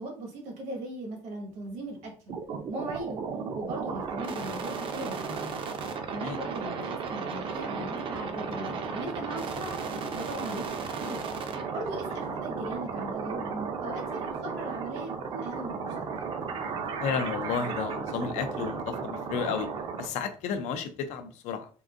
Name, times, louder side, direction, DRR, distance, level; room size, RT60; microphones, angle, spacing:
voice 1, 0.0-2.1 2.7-3.2 3.5-5.5 6.1-9.8 10.1-11.2 11.7-16.1, right 1 dB, 80° right, 1 dB, 1.4 m, -38 dB
sound 1, 1.4-21.3, left 3 dB, 50° left, 0.9 m, -50 dB
sound 2, 2.3-20.1, right 5 dB, 45° right, 0.5 m, -34 dB
voice 2, 17.0-19.7 20.0-21.7, left 6 dB, 75° left, 9 dB, 0.5 m, -32 dB
3.7 x 2.5 x 2.5 m, 0.41 s
cardioid pair, 130°, 12 cm